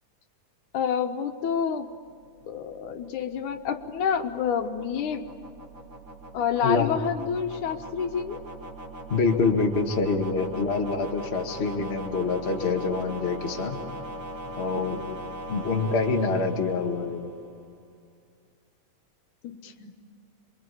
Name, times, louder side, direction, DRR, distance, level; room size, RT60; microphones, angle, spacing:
voice 1, 0.7-1.9 2.5-5.3 6.3-8.4 19.4-19.9, left 7 dB, 80° left, 6 dB, 2.7 m, -28 dB
sound 1, 1.4-17.6, right 1 dB, 40° right, 2.9 m, -41 dB
voice 2, 9.1-13.8 14.5-15.0 15.5-17.3, left 4 dB, 25° left, 2 dB, 1.7 m, -26 dB
28.0 x 24.0 x 8.5 m, 2.1 s
omnidirectional pair, 3.5 m